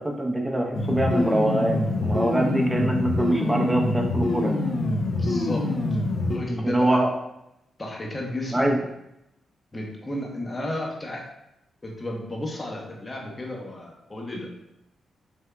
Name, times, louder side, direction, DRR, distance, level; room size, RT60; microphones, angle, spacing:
voice 1, 0.0-4.6 6.6-7.1 8.5-8.8, right 1 dB, 15° right, 1 dB, 0.7 m, -24 dB
sound 1, 0.7-6.4, left 2 dB, 60° left, 0.5 m, -25 dB
voice 2, 5.1-5.7 6.3-7.0 7.8-8.7 9.7-11.2 11.8-14.5, left 1 dB, 30° left, -1 dB, 0.8 m, -33 dB
3.5 x 2.7 x 2.2 m, 0.86 s
hypercardioid pair, 40°, 0 cm